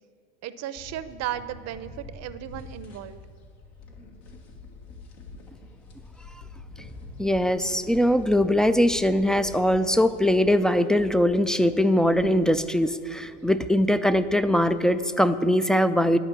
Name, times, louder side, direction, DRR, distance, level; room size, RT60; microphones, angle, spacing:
voice 1, 0.4-3.2, right 11 dB, 50° right, 13 dB, 0.7 m, -35 dB
sound 1, 0.8-15.0, left 3 dB, 70° left, 1.8 m, -46 dB
voice 2, 7.2-16.2, equal, ahead, 12 dB, 0.3 m, -21 dB
11.0 x 5.0 x 8.1 m, 2.4 s
hypercardioid pair, 75°, 35 cm